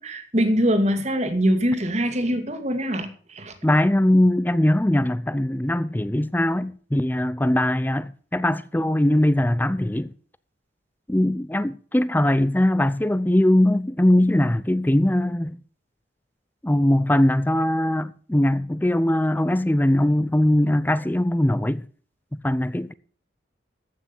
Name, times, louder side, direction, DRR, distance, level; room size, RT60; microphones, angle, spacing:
voice 1, 0.0-3.5, equal, 35° right, 2.0 m, -23 dB
voice 2, 3.6-10.1 11.1-15.6 16.6-21.8 22.3-22.9, left 1 dB, 10° left, 0.5 m, -21 dB
15.0 x 6.2 x 7.1 m
head